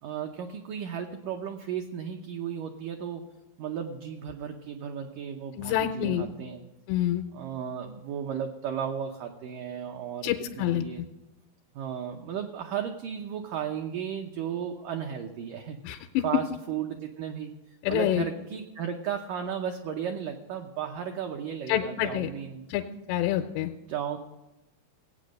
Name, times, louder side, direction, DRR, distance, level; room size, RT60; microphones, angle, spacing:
voice 1, 0.0-3.2 3.6-6.6 7.3-11.0 11.8-15.8 16.2-17.5 17.9-22.6 23.9-24.2, right 8 dB, 85° right, 3 dB, 1.8 m, -34 dB
voice 2, 5.6-6.3 6.9-7.2 10.2-11.1 15.8-16.2 17.8-18.2 21.7-22.3 22.7-22.8 23.1-23.7, left 12 dB, 85° left, 5 dB, 2.8 m, -27 dB
17.5 x 8.6 x 6.4 m, 0.98 s
omnidirectional pair, 5.0 m